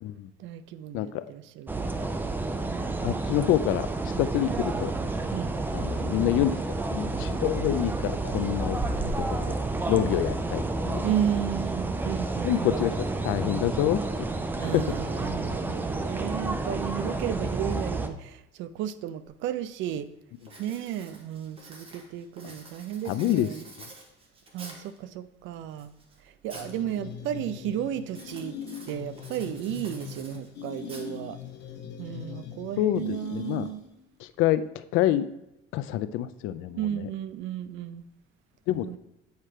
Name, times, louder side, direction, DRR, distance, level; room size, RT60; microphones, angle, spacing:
voice 1, 0.4-2.0 5.3-5.5 11.0-12.8 14.6-20.1 20.6-23.6 24.5-25.9 26.4-28.6 28.9-31.4 32.0-33.8 36.8-38.0 38.8-39.0, right 10 dB, 70° right, 13 dB, 0.5 m, -33 dB
voice 2, 0.9-1.3 3.0-3.9 4.2-4.9 5.7-6.6 6.9-9.6 9.9-11.0 12.4-12.9 13.2-14.3 14.6-14.8 23.1-23.5 32.8-33.7 34.4-35.3 35.7-37.1 38.7-38.9, left 12 dB, 85° left, 14 dB, 0.5 m, -27 dB
sound 1, 1.7-18.1, right 2 dB, 10° right, 0.4 m, -30 dB
Writing, 19.3-19.4 19.8-20.1 20.4-25.0 25.5-26.8 27.1-27.5 28.1-31.5, right 2 dB, 30° right, 1.3 m, -48 dB
sound 2, 26.5-34.0, left 8 dB, 60° left, 0.9 m, -41 dB
8.1 x 4.3 x 5.0 m, 0.90 s
cardioid pair, 165°, 20 cm